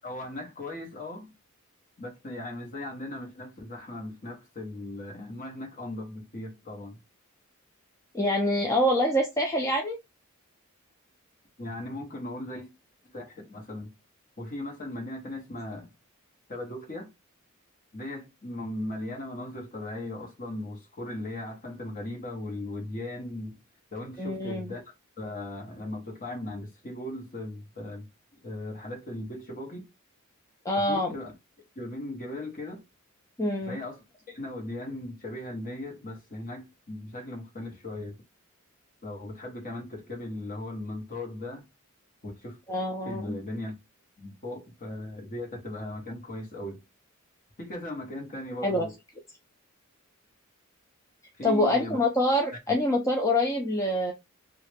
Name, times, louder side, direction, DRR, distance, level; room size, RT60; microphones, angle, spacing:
voice 1, 0.0-1.3 2.0-7.0 11.6-12.7 13.1-13.9 14.4-15.9 16.5-17.1 17.9-23.6 23.9-24.8 25.2-28.1 28.4-29.8 30.7-31.3 31.7-32.8 33.7-34.0 34.3-38.2 39.0-41.6 42.2-42.6 43.0-43.8 44.2-46.8 47.6-48.9 51.4-52.0 52.7-52.8, left 1 dB, 40° left, 1.0 m, -38 dB
voice 2, 8.1-10.0 24.2-24.7 30.6-31.1 33.4-33.8 42.7-43.3 48.6-48.9 51.4-54.1, left 1 dB, 15° left, 0.4 m, -25 dB
3.1 x 2.4 x 3.3 m
head